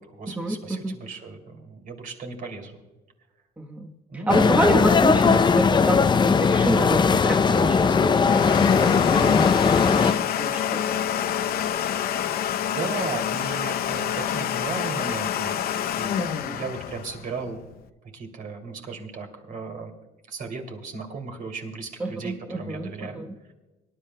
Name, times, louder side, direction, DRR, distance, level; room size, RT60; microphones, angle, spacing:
voice 1, 0.0-2.8 4.1-4.5 12.3-15.7 15.9-17.8 18.1-19.9 20.3-23.2, right 4 dB, 55° right, 4 dB, 2.8 m, -36 dB
voice 2, 3.6-3.9 4.1-11.0 16.2-16.6 22.0-23.3, right 1 dB, 10° right, 1 dB, 1.1 m, -28 dB
sound 1, 4.3-10.1, left 5 dB, 25° left, 0.5 m, -19 dB
Domestic sounds home sounds, 7.1-17.8, left 9 dB, 65° left, 0.7 m, -27 dB
24.5 x 11.0 x 2.2 m, 1.1 s
cardioid pair, 110°, 17 cm